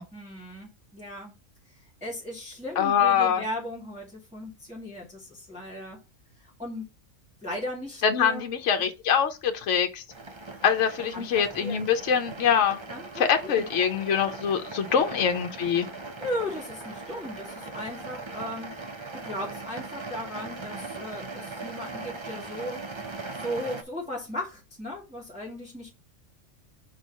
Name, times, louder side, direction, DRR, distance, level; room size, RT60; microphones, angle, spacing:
voice 1, 0.1-1.3 2.0-6.0 6.4-6.8 7.4-8.5 11.1-11.8 12.9-13.7 14.9-15.2 16.2-18.8 19.1-22.8 23.4-25.9, left 1 dB, 5° right, 2.2 m, -37 dB
voice 2, 2.8-3.4 8.0-10.0 10.6-12.8 13.2-15.9, left 7 dB, 65° left, 1.1 m, -24 dB
sound 1, 10.1-23.8, right 3 dB, 30° right, 0.6 m, -40 dB
4.6 x 4.5 x 5.4 m
omnidirectional pair, 1.4 m